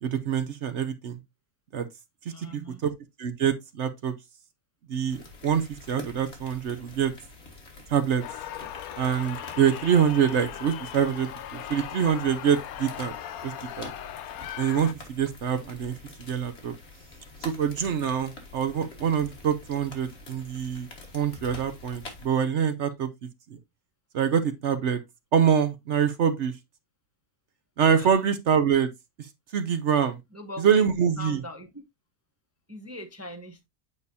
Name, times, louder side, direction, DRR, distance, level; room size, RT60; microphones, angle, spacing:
voice 1, 0.0-1.2 1.7-1.9 2.4-2.9 3.2-4.1 4.9-7.1 7.9-8.2 9.0-13.1 13.4-13.9 14.6-16.7 17.4-20.9 21.1-23.1 24.1-25.0 25.3-26.5 27.8-28.9 29.5-30.2 30.6-31.4, right 8 dB, 60° right, 0.9 m, -25 dB
voice 2, 2.3-2.8 28.0-28.1 30.3-30.9 31.2-31.7 32.7-33.7, left 1 dB, 15° right, 0.6 m, -40 dB
sound 1, 5.1-22.3, left 2 dB, 45° left, 1.9 m, -46 dB
sound 2, 8.2-14.9, left 11 dB, 75° left, 1.1 m, -39 dB
8.2 x 4.9 x 2.7 m
omnidirectional pair, 1.6 m